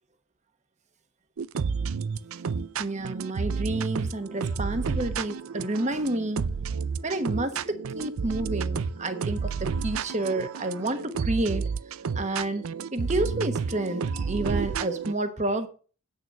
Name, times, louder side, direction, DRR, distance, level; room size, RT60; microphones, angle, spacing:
sound 1, 1.4-15.1, right 5 dB, 75° right, 0.5 m, -31 dB
voice 1, 2.8-6.5 7.0-11.7 12.1-12.7 12.9-15.7, right 2 dB, 35° right, 1.2 m, -30 dB
8.8 x 6.7 x 6.1 m
head